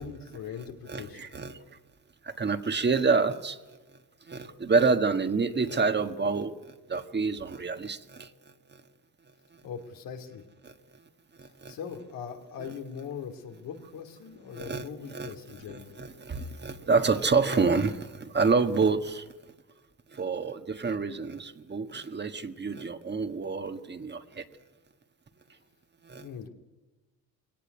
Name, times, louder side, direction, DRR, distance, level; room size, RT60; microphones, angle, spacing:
voice 1, 0.0-1.2 9.6-10.4 11.7-16.1 26.2-26.5, left 7 dB, 85° left, 5 dB, 2.9 m, -41 dB
voice 2, 0.9-1.6 2.2-3.6 4.3-8.3 10.6-10.7 11.4-11.7 14.5-19.2 20.1-24.4 26.1-26.2, right 4 dB, 30° right, 7 dB, 1.6 m, -28 dB
22.0 x 18.0 x 9.7 m, 1.2 s
cardioid pair, 90°, 33 cm